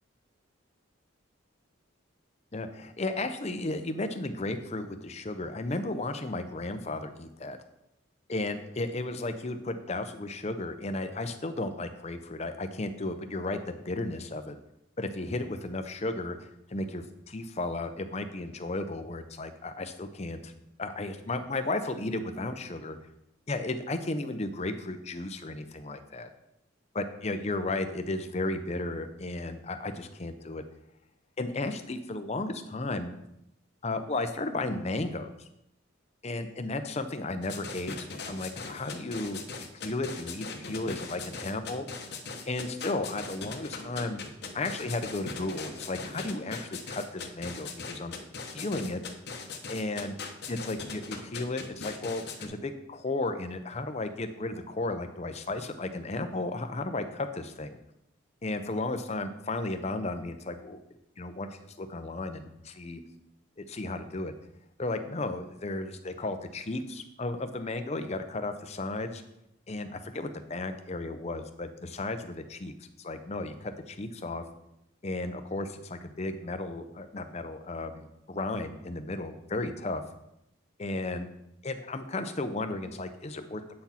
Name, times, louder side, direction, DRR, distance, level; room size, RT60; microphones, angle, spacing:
voice 1, 2.5-7.6 8.3-14.5 15.0-20.5 20.8-23.0 23.5-26.3 26.9-30.6 31.4-33.1 33.8-35.5 36.2-41.9 42.5-44.2 44.5-48.1 48.5-49.0 49.7-50.1 50.5-57.8 58.4-60.8 61.2-63.0 63.6-64.3 64.8-69.2 69.7-72.7 73.0-74.4 75.0-80.0 80.8-81.3 81.6-83.6, left 2 dB, 30° left, 8 dB, 0.6 m, -34 dB
sound 1, 37.4-52.5, left 4 dB, 55° left, 1.0 m, -40 dB
8.6 x 6.0 x 4.3 m, 0.83 s
head